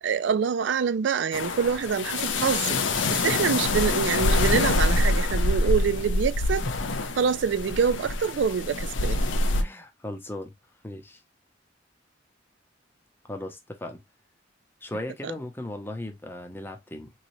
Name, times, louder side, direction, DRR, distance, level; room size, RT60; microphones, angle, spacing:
voice 1, 0.0-6.7 7.2-9.2 15.2-15.3, right 6 dB, 70° right, 0.4 m, -26 dB
sound 1, 1.3-9.6, left 2 dB, 90° left, 0.7 m, -25 dB
voice 2, 9.6-10.5 10.8-11.2 13.2-14.0 14.8-17.1, left 1 dB, 10° left, 0.7 m, -37 dB
4.0 x 3.1 x 2.7 m
head